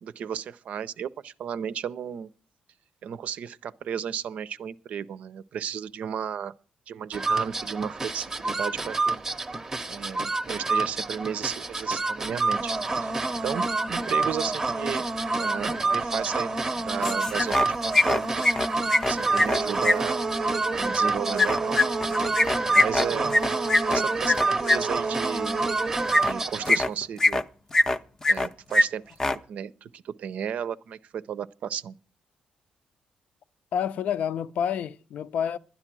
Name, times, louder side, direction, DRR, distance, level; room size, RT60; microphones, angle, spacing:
voice 1, 0.0-2.3 3.0-6.5 6.9-9.2 9.9-12.7 13.0-13.1 13.4-15.1 15.4-18.4 19.1-20.2 20.7-21.8 22.7-23.3 23.9-25.6 26.2-27.4 28.3-29.2 29.5-32.0, right 8 dB, 60° right, 0.6 m, -34 dB
sound 1, 7.1-26.8, right 3 dB, 15° right, 0.7 m, -27 dB
sound 2, 17.0-17.7 17.9-20.0 21.4-24.8 26.1-26.3 26.7-27.4 27.7-28.5 28.7-28.8 29.1-29.4, left 2 dB, 20° left, 0.6 m, -22 dB
voice 2, 33.7-35.6, left 8 dB, 60° left, 0.5 m, -29 dB
12.0 x 10.0 x 6.1 m
cardioid pair, 145°, 3 cm